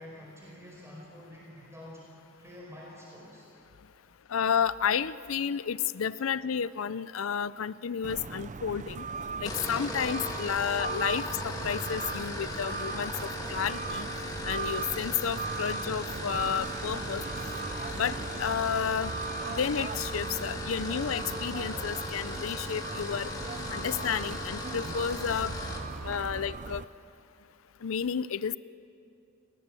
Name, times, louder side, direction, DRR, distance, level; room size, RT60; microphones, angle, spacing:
voice 1, 0.0-2.0 2.4-3.5, left 1 dB, 15° right, -4 dB, 4.9 m, -47 dB
voice 2, 4.3-9.0 9.4-14.1 14.4-17.2 17.9-19.1 19.5-23.3 23.7-25.5 26.0-26.8 27.8-28.6, left 7 dB, 90° left, 17 dB, 0.5 m, -31 dB
sound 1, 8.0-26.8, right 4 dB, 35° right, 0.5 m, -38 dB
sound 2, 9.4-25.9, left 1 dB, 20° left, 2.5 m, -38 dB
sound 3, 13.1-14.9 15.2-16.0 16.6-17.2 17.5-17.7 18.4-18.5 19.0-20.5 20.9-21.0 23.3-26.7, left 1 dB, ahead, 7.1 m, -53 dB
30.0 x 18.5 x 7.6 m, 2.8 s
head